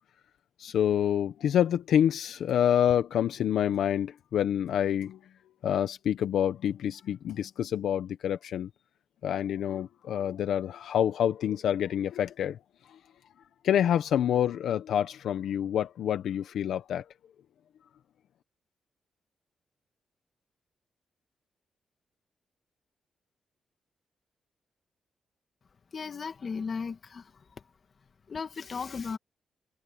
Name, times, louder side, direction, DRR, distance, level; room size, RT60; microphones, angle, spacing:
voice 1, 0.6-5.2 5.6-8.7 9.2-12.6 12.9-13.0 13.6-17.0, left 10 dB, 80° left, 1.2 m, -27 dB
voice 2, 25.9-27.3 28.3-29.2, left 5 dB, 50° left, 2.5 m, -35 dB
cardioid pair, 70°, 0 cm